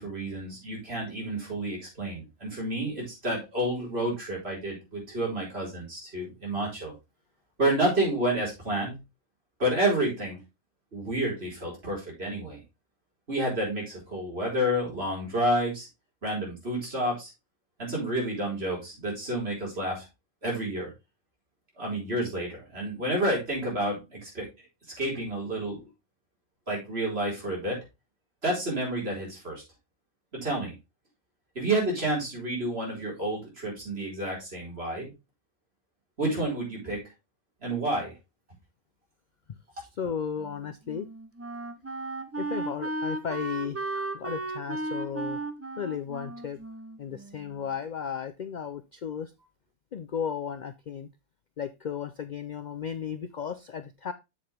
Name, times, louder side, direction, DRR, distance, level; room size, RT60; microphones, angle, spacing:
voice 1, 0.0-6.9 7.6-9.0 9.6-10.4 10.9-12.6 13.3-15.9 16.2-17.3 17.8-20.0 20.4-20.9 21.8-24.5 25.0-25.9 26.7-27.8 28.4-29.6 30.3-30.7 31.5-35.1 36.2-37.0 37.6-38.1, right 1 dB, 45° right, -3 dB, 4.7 m, -29 dB
voice 2, 40.0-41.1 42.4-45.4 45.8-46.6 47.0-49.3 49.9-51.1 51.6-54.1, left 7 dB, 70° left, 12 dB, 0.4 m, -35 dB
Wind instrument woodwind instrument, 40.4-47.7, right 2 dB, 20° right, 0.4 m, -35 dB
7.8 x 7.3 x 3.4 m, 0.24 s
omnidirectional pair, 1.4 m